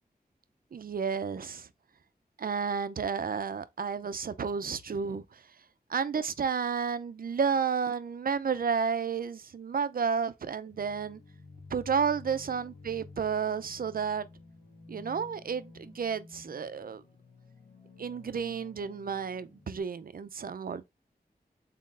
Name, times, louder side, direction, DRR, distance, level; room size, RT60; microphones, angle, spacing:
voice 1, 0.7-1.7 2.4-5.4 5.9-11.2 11.7-14.3 14.9-17.0 18.0-20.8, right 6 dB, 60° right, 0.5 m, -31 dB
sound 1, 10.7-19.8, left 3 dB, 85° left, 1.4 m, -52 dB
3.8 x 3.6 x 2.5 m
wide cardioid pair, 60°, 17 cm